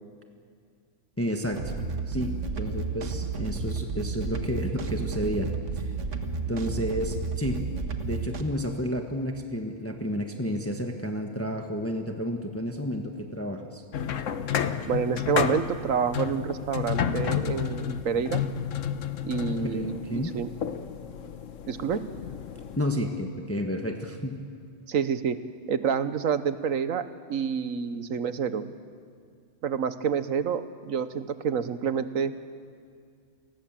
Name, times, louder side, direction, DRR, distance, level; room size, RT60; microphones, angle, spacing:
voice 1, 1.2-1.7 2.1-5.9 6.5-7.6 8.0-13.8 19.6-20.3 22.8-24.4, equal, 10° left, 4 dB, 1.4 m, -31 dB
sound 1, 1.4-8.4, right 4 dB, 65° right, 1.8 m, -32 dB
sound 2, 13.9-22.8, left 8 dB, 70° left, 1.3 m, -31 dB
voice 2, 14.9-18.4 19.2-20.5 21.7-22.0 24.9-25.4 25.7-28.7 29.6-32.3, right 7 dB, 90° right, 11 dB, 1.4 m, -28 dB
30.0 x 19.5 x 7.6 m, 2.1 s
omnidirectional pair, 1.4 m